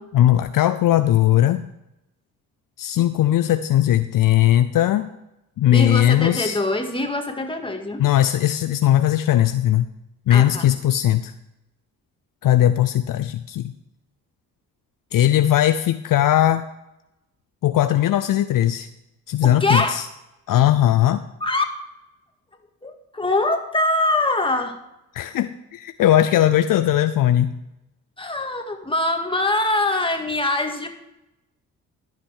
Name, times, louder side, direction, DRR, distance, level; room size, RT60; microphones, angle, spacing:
voice 1, 0.1-1.6 2.8-5.1 5.6-6.6 8.0-9.9 10.3-11.3 12.4-13.7 15.1-16.7 17.6-18.9 19.3-20.0 20.5-21.2 25.1-27.5, left 12 dB, 65° left, 11 dB, 0.6 m, -18 dB
voice 2, 5.7-8.0 10.3-10.7 19.4-20.0 21.4-21.7 22.8-24.8 28.2-30.9, left 2 dB, 15° left, 4 dB, 2.0 m, -23 dB
13.0 x 5.9 x 6.5 m, 0.88 s
supercardioid pair, 60°, 36 cm